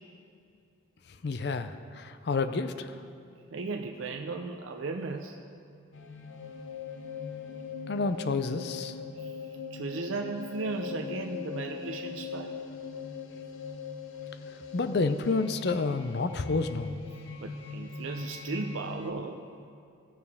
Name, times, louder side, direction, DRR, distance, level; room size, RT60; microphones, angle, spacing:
voice 1, 1.1-3.0 7.9-9.0 14.7-17.0, left 3 dB, 55° left, 10 dB, 0.4 m, -29 dB
voice 2, 3.5-5.4 9.2-9.4 9.7-12.6 17.4-19.4, right 3 dB, 85° right, 3 dB, 0.6 m, -36 dB
sound 1, 5.9-19.1, left 5 dB, 75° left, 0.8 m, -41 dB
17.0 x 6.6 x 3.5 m, 2.5 s
head